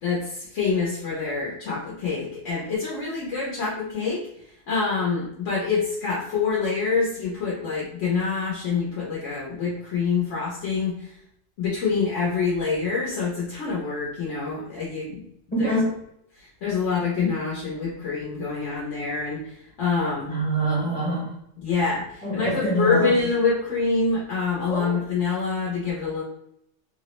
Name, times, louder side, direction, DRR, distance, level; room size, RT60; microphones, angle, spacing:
voice 1, 0.0-4.2 4.7-11.1 11.6-15.2 15.6-15.8 16.4-20.3 21.6-26.2, left 4 dB, 90° left, -6 dB, 1.1 m, -26 dB
voice 2, 15.5-15.9 20.3-21.3 22.2-23.2 24.7-25.0, right 1 dB, 15° left, -5 dB, 0.4 m, -25 dB
3.2 x 2.0 x 2.9 m, 0.75 s
omnidirectional pair, 1.2 m